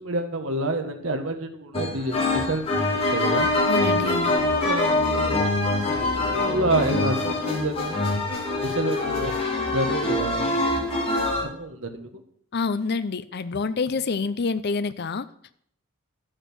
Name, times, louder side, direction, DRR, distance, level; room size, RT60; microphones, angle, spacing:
voice 1, 0.0-3.5 4.5-5.5 5.9-8.0 8.6-9.3 9.7-10.5 11.4-12.2, right 2 dB, 65° right, 6 dB, 1.4 m, -28 dB
sound 1, 1.7-11.4, left 2 dB, 25° left, 2.5 m, -24 dB
voice 2, 3.7-4.4 12.5-15.3, left 4 dB, 50° left, 13 dB, 0.6 m, -27 dB
12.0 x 6.5 x 6.3 m, 0.66 s
head